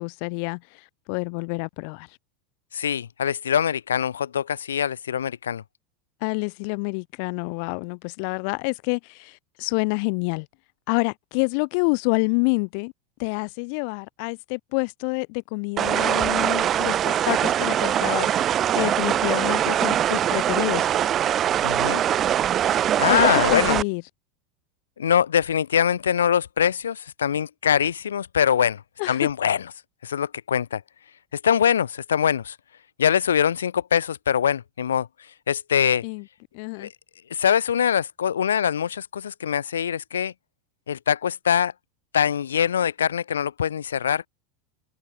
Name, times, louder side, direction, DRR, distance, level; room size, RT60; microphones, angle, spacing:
voice 1, 0.0-2.1 6.2-10.5 10.9-12.9 13.2-20.9 23.1-24.0 29.0-29.3 36.0-36.2 36.5-36.9, left 36 dB, 50° left, 4.3 m, -28 dB
voice 2, 2.7-5.6 21.6-22.0 23.0-23.8 25.0-28.8 29.1-29.6 30.0-30.8 31.4-32.6 33.0-35.1 35.5-36.0 36.8-36.9 37.3-40.3 40.9-41.7 42.1-44.3, left 8 dB, 70° left, 5.7 m, -23 dB
sound 1, 15.8-23.8, right 10 dB, 35° right, 4.2 m, -22 dB
figure-of-eight pair, 85°, 0 cm